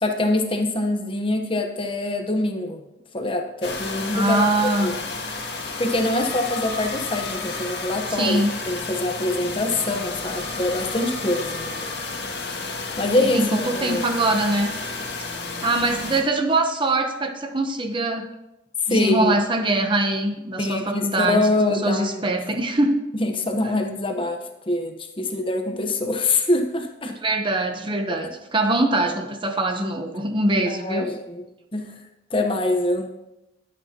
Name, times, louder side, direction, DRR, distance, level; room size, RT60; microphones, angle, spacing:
voice 1, 0.0-2.8 3.1-5.0 5.8-11.9 13.0-14.0 18.9-19.4 20.6-22.2 23.2-24.4 24.7-27.1 28.1-28.3 30.6-31.4 31.7-31.9 32.3-33.1, left 2 dB, 30° left, 4 dB, 1.1 m, -24 dB
sound 1, 3.6-16.2, left 3 dB, 65° left, 2.1 m, -31 dB
voice 2, 4.1-4.9 8.1-8.6 13.2-14.7 15.2-15.3 15.6-18.3 18.9-23.0 27.0-31.1, right 2 dB, 25° right, 5 dB, 0.9 m, -23 dB
21.0 x 8.5 x 3.0 m, 0.95 s
head